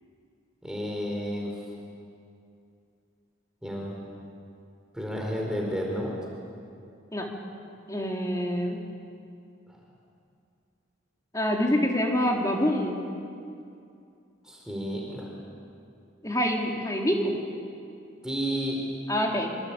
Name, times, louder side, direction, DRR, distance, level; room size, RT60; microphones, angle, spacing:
voice 1, 0.6-1.6 3.6-4.0 4.9-6.1 9.7-9.8 14.4-15.3 18.2-18.8, equal, 5° right, -2 dB, 4.5 m, -31 dB
voice 2, 7.9-8.8 11.3-13.0 16.2-17.4 19.1-19.5, equal, 15° left, 0 dB, 3.5 m, -26 dB
26.0 x 25.5 x 8.9 m, 2.5 s
head